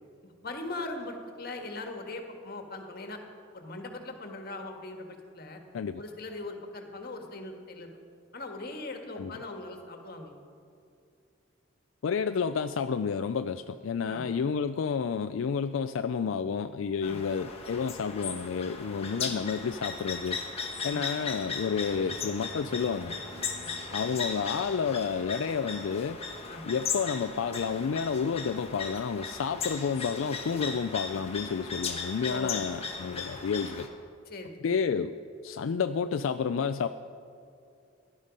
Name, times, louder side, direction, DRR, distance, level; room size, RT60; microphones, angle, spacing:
voice 1, 0.2-3.2 3.5-5.6 6.0-7.9 8.3-10.3 14.1-14.4 17.0-17.2 19.0-19.3 20.9-21.0 23.6-23.8 26.5-26.6 32.2-32.6 34.2-34.9, left 2 dB, 50° left, 4 dB, 1.6 m, -40 dB
voice 2, 12.0-20.4 20.8-23.1 23.9-26.2 26.6-33.9 34.6-35.1 35.4-36.9, left 6 dB, 85° left, 9 dB, 0.4 m, -30 dB
sound 1, 17.0-33.9, left 5 dB, 30° left, 1.4 m, -37 dB
sound 2, 21.8-27.4, equal, 85° right, 2.9 m, -53 dB
16.5 x 11.5 x 5.2 m, 2.5 s
head